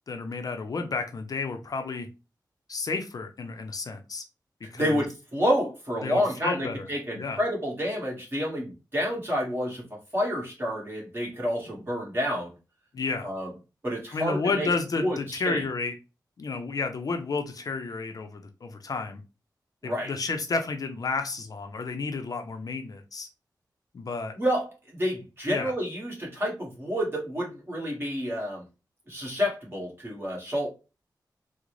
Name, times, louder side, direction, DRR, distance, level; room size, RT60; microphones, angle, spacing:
voice 1, 0.1-2.1 2.7-4.2 4.7-5.0 6.0-6.9 7.1-7.4 12.9-13.3 14.1-15.9 16.4-19.2 19.8-23.3 23.9-24.3 25.5-25.7, left 4 dB, 55° left, 6 dB, 0.5 m, -31 dB
voice 2, 4.7-12.6 13.2-13.5 13.8-14.7 15.0-15.6 19.8-20.1 24.3-28.6 29.1-30.7, equal, 30° right, -3 dB, 1.4 m, -29 dB
3.7 x 2.1 x 3.0 m, 0.29 s
wide cardioid pair, 145°, 7 cm